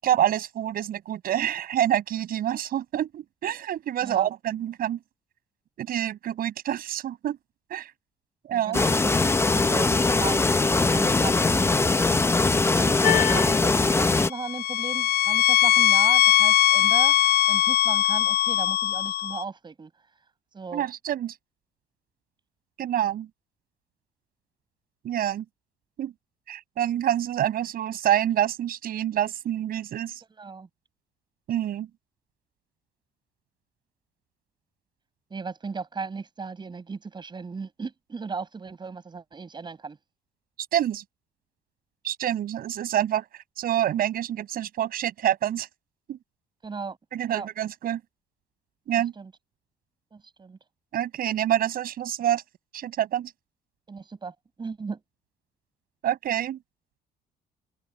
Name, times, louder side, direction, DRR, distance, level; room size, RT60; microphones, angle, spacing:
voice 1, 0.0-5.0 5.8-7.4 7.7-7.9 8.4-8.8 20.7-21.3 22.8-23.3 25.0-25.4 26.0-26.1 26.5-30.2 31.5-31.9 40.7-41.0 42.0-45.7 46.1-46.2 47.1-48.0 48.9-49.1 50.9-52.4 52.7-53.3 56.0-56.6, right 11 dB, 60° right, 6.4 m, -27 dB
voice 2, 8.5-11.8 12.7-19.9 20.5-20.9 30.4-30.7 35.3-40.0 46.6-47.0 47.3-47.5 49.2-49.3 50.1-50.6 53.9-55.0, right 4 dB, 25° right, 7.5 m, -36 dB
sound 1, 8.7-14.3, left 3 dB, 15° left, 0.8 m, -21 dB
sound 2, 13.0-13.6 14.3-19.4, left 13 dB, 70° left, 0.5 m, -21 dB
cardioid pair, 110°, 17 cm